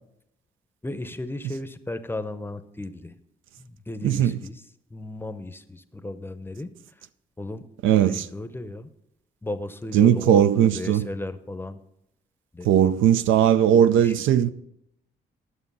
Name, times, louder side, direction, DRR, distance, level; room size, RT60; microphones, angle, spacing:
voice 1, 0.8-3.1 3.6-4.6 4.9-6.7 7.0-7.1 7.4-8.9 9.4-11.8 12.5-12.7 13.7-14.1 14.4-14.5, left 2 dB, 10° left, 0.7 m, -35 dB
voice 2, 7.8-8.2 9.9-11.1 12.7-14.5, right 10 dB, 80° right, 0.5 m, -18 dB
11.5 x 6.6 x 5.4 m
cardioid pair, 90°, 20 cm